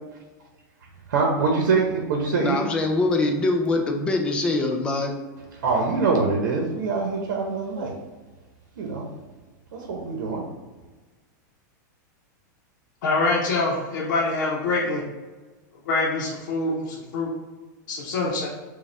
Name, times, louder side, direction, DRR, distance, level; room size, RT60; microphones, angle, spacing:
voice 1, 1.1-2.6 5.6-8.0 8.8-9.1 9.7-10.4, right 4 dB, 75° right, 0 dB, 0.8 m, -24 dB
voice 2, 2.4-5.1, left 2 dB, 10° left, 3 dB, 0.3 m, -23 dB
voice 3, 13.0-15.0 15.9-17.3 17.9-18.5, left 3 dB, 70° left, -4 dB, 0.7 m, -25 dB
5.0 x 2.3 x 3.3 m, 1.3 s
supercardioid pair, 170°, 10 cm